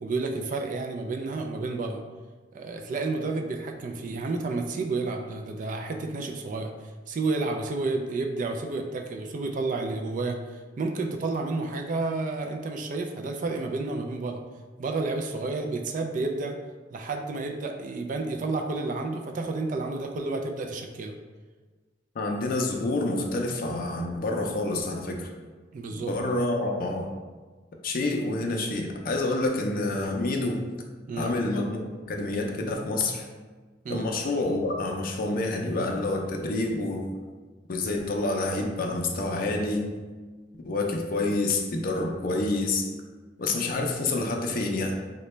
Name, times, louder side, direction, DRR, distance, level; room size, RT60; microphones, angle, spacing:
voice 1, 0.0-2.0 2.5-6.7 7.1-14.4 14.8-16.6 16.9-21.1 25.7-26.1 31.1-31.3 33.8-34.1, right 3 dB, 45° right, 4 dB, 0.3 m, -30 dB
voice 2, 22.2-25.3 25.9-27.1 27.8-30.6 31.2-31.8 32.1-33.3 33.9-37.1 37.7-39.8 40.6-42.9 43.4-44.9, left 2 dB, 50° left, 1 dB, 0.4 m, -28 dB
3.8 x 2.2 x 3.1 m, 1.4 s
head